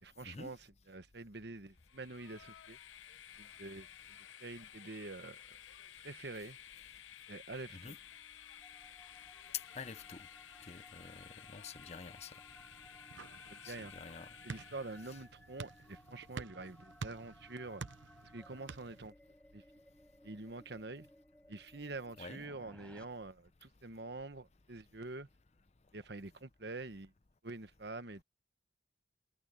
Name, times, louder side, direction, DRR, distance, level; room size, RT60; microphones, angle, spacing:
voice 1, 0.0-2.8 3.4-3.9 4.4-5.6 6.0-6.6 7.3-7.9 13.5-13.9 14.4-17.8 18.2-19.1 19.5-19.6 20.2-21.1 21.5-25.3 25.9-27.1 27.4-28.2, right 3 dB, 60° right, 1.2 m, -46 dB
Train, 1.7-15.2, left 10 dB, 85° left, 0.8 m, -55 dB
sound 1, 8.0-23.0, left 1 dB, 5° left, 4.3 m, -61 dB
voice 2, 9.7-10.3 10.6-12.3 13.6-14.3 22.2-22.4, left 4 dB, 35° left, 0.7 m, -49 dB
sound 2, 12.5-19.1, right 4 dB, 80° right, 0.6 m, -50 dB
head